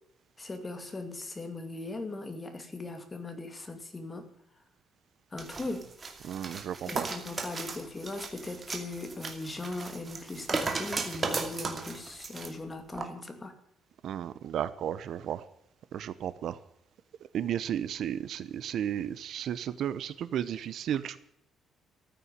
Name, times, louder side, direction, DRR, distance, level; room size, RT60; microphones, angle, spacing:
voice 1, 0.4-4.3 5.3-5.9 6.9-13.6, left 2 dB, 20° left, 7 dB, 2.4 m, -39 dB
sound 1, 5.4-12.5 12.9-13.1, right 4 dB, 30° right, 2.4 m, -36 dB
voice 2, 6.2-7.1 14.0-15.4 15.9-16.6 17.3-21.2, right 10 dB, 60° right, 15 dB, 0.9 m, -33 dB
14.0 x 9.0 x 9.7 m, 0.78 s
cardioid pair, 145°, 0 cm